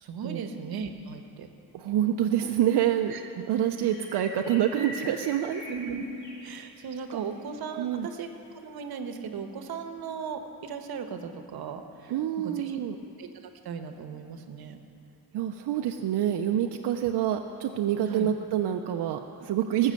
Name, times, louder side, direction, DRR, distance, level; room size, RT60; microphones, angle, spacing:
voice 1, 0.0-1.5 3.1-3.2 3.8-3.9 5.7-6.0 6.4-12.8 13.2-13.3 13.6-14.8 18.1-18.3 19.8-19.9, right 6 dB, 70° right, 7 dB, 1.1 m, -37 dB
voice 2, 1.7-3.1 3.5-5.6 7.1-7.2 7.8-8.1 12.1-13.0 15.3-19.9, right 10 dB, 90° right, 4 dB, 0.6 m, -27 dB
sound 1, 3.5-6.9 7.2-7.3 7.7-7.8, equal, 45° left, 3.0 m, -43 dB
18.5 x 6.4 x 7.6 m, 2.6 s
wide cardioid pair, 175°, 39 cm